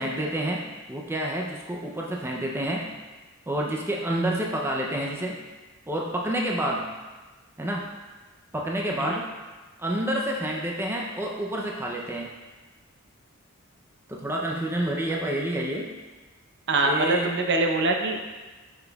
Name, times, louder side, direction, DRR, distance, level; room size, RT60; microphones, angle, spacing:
voice 1, 0.0-2.9 3.5-5.4 5.9-6.9 7.6-7.8 8.5-9.3 9.8-12.3 14.1-15.9 16.8-17.4, right 1 dB, 10° right, -1 dB, 0.5 m, -28 dB
voice 2, 16.7-18.3, right 2 dB, 55° right, 2 dB, 0.7 m, -24 dB
7.3 x 5.9 x 2.3 m, 1.3 s
head